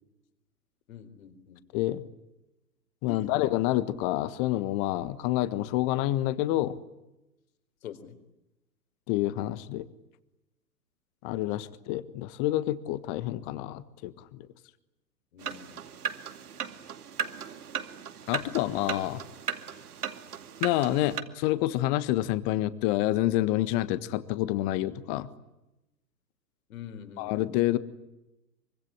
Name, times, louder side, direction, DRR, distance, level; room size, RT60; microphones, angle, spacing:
voice 1, 0.9-1.8 3.1-3.4 7.8-8.2 15.3-15.8 26.7-27.4, left 8 dB, 55° left, 8 dB, 4.3 m, -45 dB
voice 2, 1.7-2.0 3.0-6.8 9.1-9.9 11.2-14.5 18.3-19.2 20.6-25.3 27.2-27.8, left 15 dB, 30° left, 14 dB, 1.6 m, -28 dB
sound 1, 15.4-21.2, right 7 dB, 65° right, 2.5 m, -37 dB
24.5 x 24.5 x 9.9 m, 0.94 s
figure-of-eight pair, 115°, 49 cm